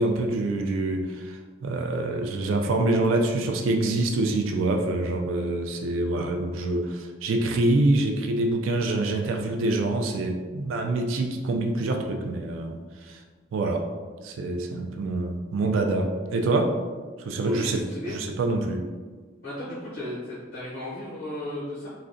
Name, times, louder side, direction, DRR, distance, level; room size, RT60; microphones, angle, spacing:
voice 1, 0.0-13.2 13.5-13.9 14.2-16.8 17.2-17.9 18.1-18.8, right 2 dB, 80° right, 3 dB, 0.3 m, -26 dB
voice 2, 17.4-18.2 19.4-21.9, left 1 dB, 45° left, -9 dB, 0.8 m, -35 dB
3.5 x 2.1 x 2.5 m, 1.4 s
head